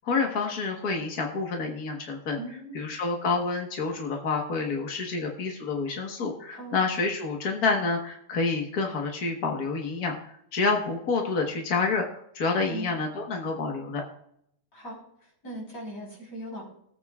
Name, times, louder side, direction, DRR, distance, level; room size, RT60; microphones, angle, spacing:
voice 1, 0.0-2.4 2.7-14.0, left 4 dB, 55° left, 2 dB, 1.0 m, -28 dB
voice 2, 2.4-2.9 6.5-6.9 12.7-12.9 14.7-16.6, right 1 dB, 25° left, -1 dB, 4.6 m, -39 dB
19.0 x 8.4 x 2.4 m, 0.72 s
omnidirectional pair, 3.5 m